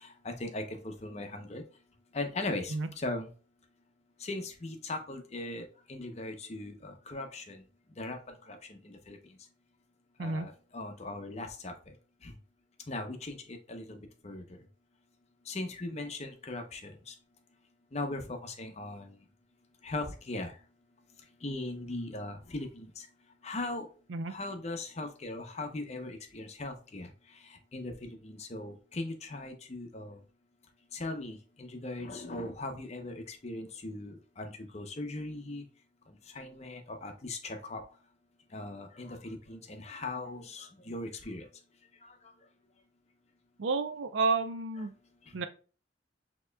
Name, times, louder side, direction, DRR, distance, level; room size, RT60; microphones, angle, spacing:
voice 1, 0.0-1.6 2.1-3.3 4.2-7.6 8.0-9.2 10.2-11.7 12.2-12.3 12.9-14.4 15.5-17.1 17.9-19.1 19.8-20.5 21.4-23.1 23.4-23.9 24.3-27.1 27.7-30.2 30.9-35.6 36.3-37.8 38.5-41.4 42.0-42.1, left 2 dB, 35° left, 5 dB, 0.7 m, -39 dB
voice 2, 43.6-44.9 45.3-45.5, right 4 dB, 80° right, 10 dB, 0.5 m, -30 dB
6.6 x 2.9 x 2.2 m, 0.37 s
head